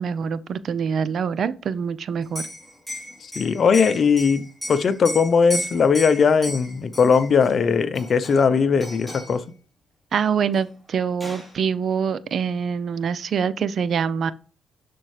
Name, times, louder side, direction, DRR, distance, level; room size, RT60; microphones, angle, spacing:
voice 1, 0.0-2.4 10.1-14.3, right 7 dB, 55° right, 0.5 m, -25 dB
Liquid, 2.2-7.5 8.0-8.5 8.8-9.4 10.6-10.7 10.9-11.5, equal, ahead, 3.4 m, -35 dB
voice 2, 3.2-9.4, left 5 dB, 50° left, 0.7 m, -19 dB
11.5 x 4.3 x 3.2 m
cardioid pair, 90°, 0 cm